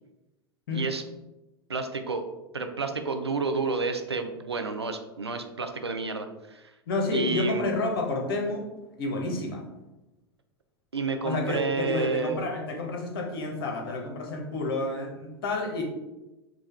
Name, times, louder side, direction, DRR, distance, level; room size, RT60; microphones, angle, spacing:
voice 1, 0.7-1.0 1.7-2.2 2.5-6.7 7.1-7.7 10.9-12.4, right 4 dB, 85° right, 6 dB, 0.4 m, -30 dB
voice 2, 6.9-8.7 9.0-9.6 11.2-15.8, left 2 dB, 60° left, 1 dB, 1.0 m, -30 dB
4.9 x 2.3 x 3.2 m, 1.0 s
figure-of-eight pair, 90°, 13 cm